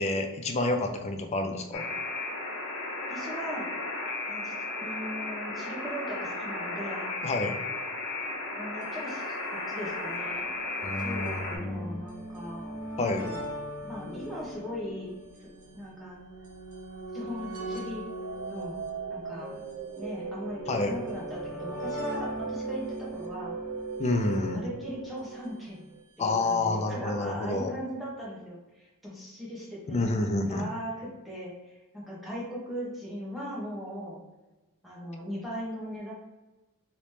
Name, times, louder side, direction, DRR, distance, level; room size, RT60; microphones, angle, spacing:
voice 1, 0.0-1.8 7.2-7.5 10.8-12.0 13.0-13.3 20.7-20.9 24.0-24.7 26.2-27.7 29.9-30.6, left 2 dB, 30° left, 5 dB, 0.4 m, -29 dB
Alarm, 1.7-11.6, left 2 dB, 80° left, 0.8 m, -34 dB
voice 2, 3.1-3.7 4.3-4.5 4.8-7.1 8.5-9.4 9.7-10.5 11.0-12.7 13.0-13.4 13.8-15.5 15.7-16.2 17.1-18.0 18.5-18.8 19.1-19.6 20.0-23.6 24.3-25.8 26.2-30.0 30.4-34.2 34.8-36.1, equal, ahead, -7 dB, 1.1 m, -39 dB
sound 1, 8.8-8.9 9.1-9.2 10.0-25.3 26.3-26.4 26.5-26.6, equal, 90° right, 0.8 m, -41 dB
sound 2, 18.1-26.0, right 4 dB, 55° right, 0.3 m, -38 dB
3.0 x 2.8 x 3.2 m, 1.1 s
head